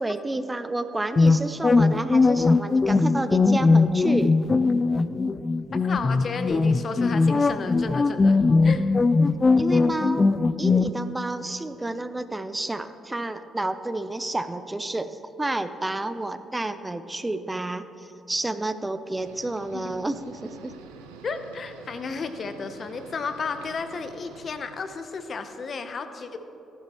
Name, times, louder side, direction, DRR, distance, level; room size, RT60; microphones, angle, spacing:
voice 1, 0.0-4.4 9.5-10.3 10.6-20.7, right 2 dB, 20° right, 11 dB, 0.6 m, -30 dB
sound 1, 1.2-10.9, left 3 dB, 35° left, 0.4 m, -20 dB
voice 2, 5.7-8.8 19.7-19.9 21.2-26.4, left 4 dB, 50° left, 9 dB, 0.8 m, -33 dB
sound 2, 19.2-24.9, right 5 dB, 85° right, 0.7 m, -47 dB
14.5 x 11.0 x 3.1 m, 2.9 s
hypercardioid pair, 50°, 0 cm